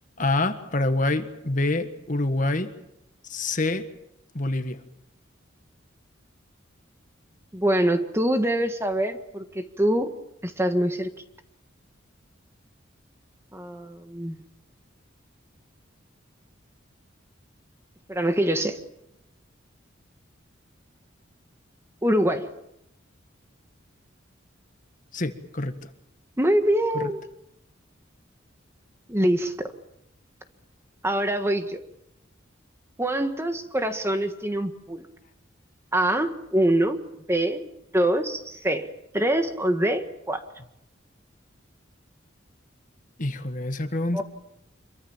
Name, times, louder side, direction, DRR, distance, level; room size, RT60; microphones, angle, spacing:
voice 1, 0.2-2.7 3.2-3.8 4.3-4.8 25.1-25.9 26.9-27.1 43.2-44.2, left 2 dB, 40° left, 9 dB, 1.6 m, -26 dB
voice 2, 7.5-10.1 10.4-11.1 13.5-14.3 18.1-18.8 22.0-22.5 26.4-27.2 29.1-29.5 31.0-31.8 33.0-35.1 35.9-37.0 37.3-37.7 37.9-38.9 39.1-40.4 44.1-44.2, right 1 dB, 15° right, 7 dB, 1.6 m, -24 dB
26.5 x 23.5 x 7.3 m, 0.82 s
head